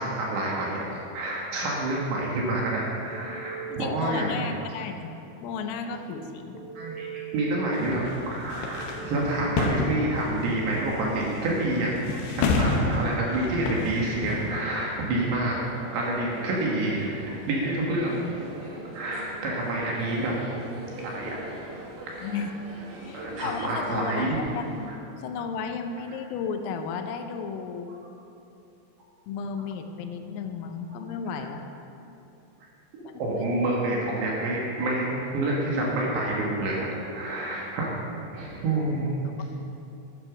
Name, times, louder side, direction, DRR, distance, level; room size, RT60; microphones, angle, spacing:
voice 1, 0.0-4.5 6.1-6.2 6.7-18.2 18.9-20.4 20.7-21.3 22.0-22.2 23.1-24.4 31.4-31.5 33.2-37.9 38.3-39.1, right 2 dB, 65° right, -3 dB, 3.2 m, -28 dB
Telephone, 3.1-3.6 6.5-7.6 8.8-9.6, right 8 dB, 90° right, 1.5 m, -39 dB
voice 2, 3.7-5.1 5.4-6.7 19.5-19.6 22.2-22.5 23.0-28.0 29.3-31.7 33.0-33.1 39.4-39.5, left 6 dB, 90° left, 6 dB, 3.5 m, -34 dB
sound 1, 7.7-14.6, left 3 dB, 75° left, 2.6 m, -30 dB
sound 2, 14.2-24.9, right 1 dB, 45° right, 3.4 m, -43 dB
10.5 x 9.7 x 5.9 m, 2.9 s
omnidirectional pair, 5.9 m